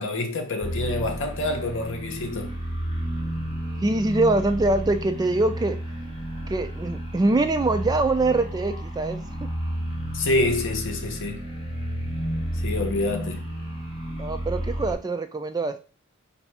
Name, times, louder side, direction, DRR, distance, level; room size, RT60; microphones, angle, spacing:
voice 1, 0.0-2.5 10.1-11.5 12.6-13.4, left 2 dB, 60° left, 0.8 m, -27 dB
sound 1, 0.6-14.9, equal, 30° left, 1.8 m, -32 dB
voice 2, 3.8-5.8 6.5-9.5 14.2-15.9, right 2 dB, 20° right, 0.3 m, -24 dB
4.1 x 2.7 x 4.7 m
head